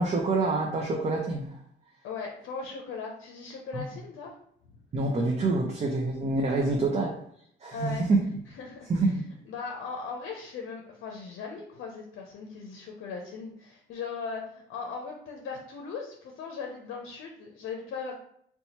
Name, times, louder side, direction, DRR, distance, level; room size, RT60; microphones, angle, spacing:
voice 1, 0.0-1.6 3.7-3.8 4.9-7.1 7.6-8.3 8.9-9.3, right 3 dB, 35° right, 0 dB, 0.5 m, -26 dB
voice 2, 2.0-4.4 6.5-6.8 7.7-8.1 8.5-8.9 9.5-18.1, left 5 dB, 80° left, 1 dB, 0.6 m, -38 dB
2.8 x 2.2 x 4.2 m, 0.69 s
cardioid pair, 90°, 20 cm